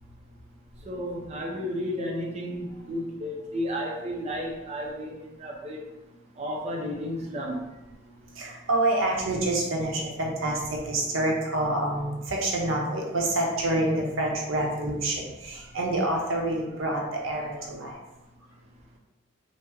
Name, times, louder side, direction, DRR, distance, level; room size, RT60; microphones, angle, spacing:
voice 1, 0.9-5.8 6.4-7.7, equal, 35° right, -1 dB, 0.5 m, -32 dB
voice 2, 1.7-2.1 2.6-3.1 3.5-3.6 7.4-7.5 7.8-18.0, right 1 dB, 80° right, -1 dB, 0.7 m, -28 dB
3.1 x 2.1 x 3.4 m, 1.0 s
head